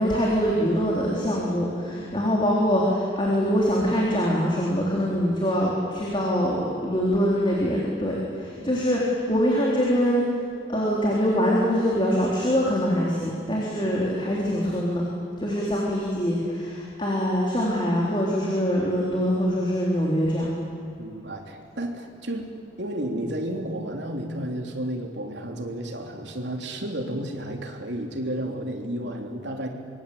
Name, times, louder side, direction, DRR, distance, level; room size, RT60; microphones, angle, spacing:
voice 1, 0.0-9.0 9.3-10.2 10.7-15.0 15.4-20.5, equal, 25° left, -4 dB, 4.0 m, -24 dB
voice 2, 1.9-2.2 8.0-8.8 15.5-15.6 21.0-22.5 22.8-29.7, right 1 dB, 65° right, 2 dB, 3.5 m, -32 dB
25.5 x 23.5 x 8.7 m, 2.3 s
head